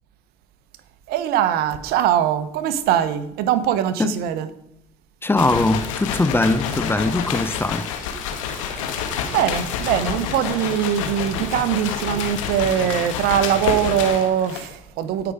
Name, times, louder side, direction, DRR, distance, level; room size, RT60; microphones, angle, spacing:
voice 1, 1.1-4.5 8.5-9.0 9.3-15.3, right 10 dB, 70° right, 1.1 m, -22 dB
voice 2, 5.2-7.9, left 2 dB, 15° left, 0.9 m, -21 dB
sound 1, 5.4-14.7, left 7 dB, 90° left, 1.6 m, -28 dB
16.0 x 6.0 x 5.0 m
supercardioid pair, 75°, 16 cm